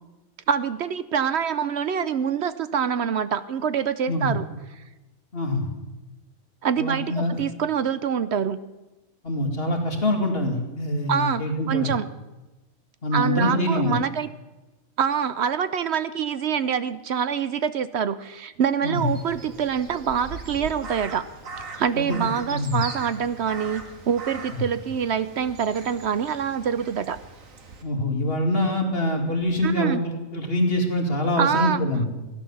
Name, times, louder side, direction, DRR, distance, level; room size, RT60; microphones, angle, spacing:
voice 1, 0.5-4.5 6.6-8.6 11.1-12.1 13.1-14.3 15.0-21.3 21.6-27.2 29.6-30.0 31.4-31.8, right 7 dB, 60° right, 13 dB, 0.9 m, -25 dB
voice 2, 5.3-5.7 6.8-7.4 9.2-11.9 13.0-14.0 18.8-19.1 22.0-22.8 27.8-32.1, left 1 dB, 45° left, 2 dB, 2.6 m, -25 dB
Crow, 18.9-27.8, right 3 dB, 90° right, 2.0 m, -40 dB
16.0 x 11.0 x 7.2 m, 1.1 s
omnidirectional pair, 1.4 m